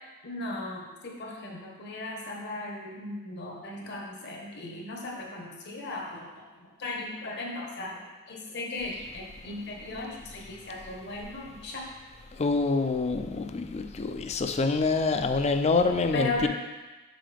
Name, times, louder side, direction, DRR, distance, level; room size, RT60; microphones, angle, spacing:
voice 1, 0.2-11.9 16.1-16.5, left 2 dB, 50° left, -1 dB, 1.2 m, -37 dB
voice 2, 12.3-16.5, left 3 dB, 30° left, 8 dB, 0.4 m, -26 dB
7.6 x 5.7 x 3.4 m, 1.2 s
head